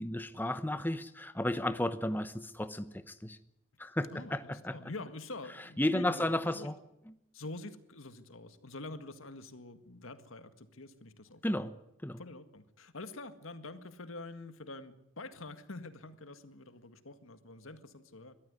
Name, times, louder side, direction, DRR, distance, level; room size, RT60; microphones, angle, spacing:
voice 1, 0.0-3.4 3.8-4.8 5.8-6.8 11.4-11.7 12.0-12.2, left 1 dB, 10° left, 11 dB, 0.9 m, -33 dB
voice 2, 4.1-6.7 7.3-11.7 12.2-18.3, left 2 dB, 85° left, 10 dB, 1.9 m, -46 dB
22.0 x 14.0 x 9.8 m, 0.82 s
head